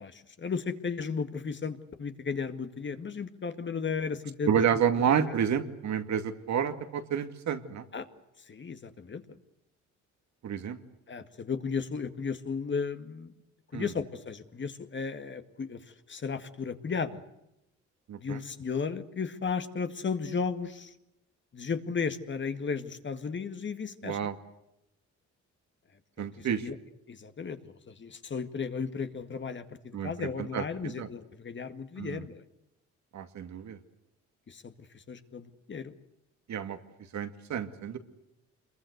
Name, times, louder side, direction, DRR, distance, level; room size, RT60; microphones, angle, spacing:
voice 1, 0.0-4.5 5.2-5.3 7.9-8.1 8.5-9.2 11.1-13.3 13.7-15.8 16.1-17.2 18.2-20.9 21.5-24.2 26.2-26.8 27.1-32.4 34.5-35.9, left 5 dB, 40° left, 9 dB, 2.0 m, -35 dB
voice 2, 4.5-7.9 10.4-10.8 13.7-13.9 18.1-18.4 24.0-24.3 26.2-26.7 29.9-31.1 32.0-32.3 33.1-33.8 36.5-36.8 37.1-38.0, right 8 dB, 65° right, 7 dB, 2.4 m, -30 dB
26.5 x 22.5 x 8.1 m, 0.85 s
cardioid pair, 90°, 30 cm